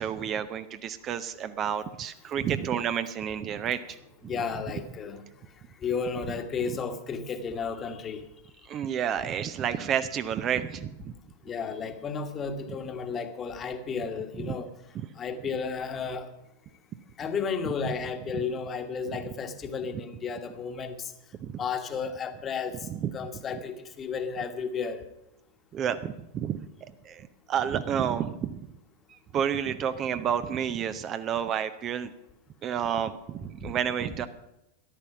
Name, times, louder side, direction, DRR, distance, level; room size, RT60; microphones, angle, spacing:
voice 1, 0.0-4.0 4.2-4.3 8.7-11.1 14.4-14.6 14.9-15.1 21.4-21.6 22.9-23.1 25.7-28.7 29.1-32.1 32.6-34.3, right 8 dB, 30° right, 11 dB, 0.7 m, -30 dB
voice 2, 4.2-5.2 5.8-8.2 11.4-14.7 15.2-16.3 17.2-21.1 21.6-22.8 23.1-25.0 33.6-33.7, left 5 dB, 25° left, 8 dB, 1.4 m, -33 dB
13.5 x 11.0 x 5.9 m, 0.88 s
figure-of-eight pair, 90°, 0 cm